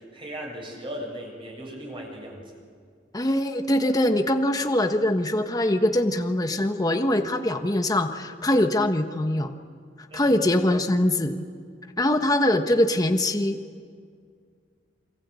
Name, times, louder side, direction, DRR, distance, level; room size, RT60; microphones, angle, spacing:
voice 1, 0.0-2.5 10.1-10.4, equal, 30° right, 0 dB, 7.5 m, -37 dB
voice 2, 3.1-9.5 10.1-11.4 12.0-13.6, left 1 dB, 20° left, 6 dB, 1.2 m, -23 dB
27.5 x 25.0 x 8.4 m, 2.1 s
head